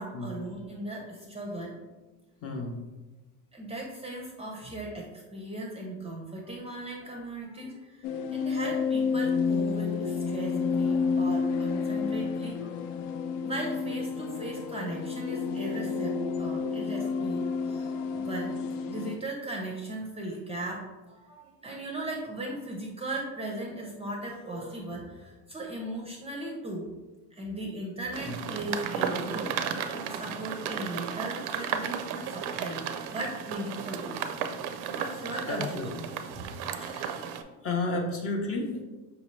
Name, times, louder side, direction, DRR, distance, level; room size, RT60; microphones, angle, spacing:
voice 1, 0.0-1.8 3.5-12.8 13.4-18.6 18.9-26.9 27.3-32.8 33.1-34.2 34.9-36.4, right 1 dB, 15° right, -1 dB, 0.5 m, -38 dB
voice 2, 2.4-2.8 28.2-28.4 35.5-35.9 36.8-37.4 37.6-38.8, left 2 dB, 35° left, 1 dB, 0.7 m, -32 dB
sound 1, 8.0-19.2, left 5 dB, 75° left, 0.5 m, -30 dB
sound 2, 28.1-37.4, right 7 dB, 70° right, 0.5 m, -34 dB
5.0 x 2.7 x 3.1 m, 1.2 s
cardioid pair, 125°, 42 cm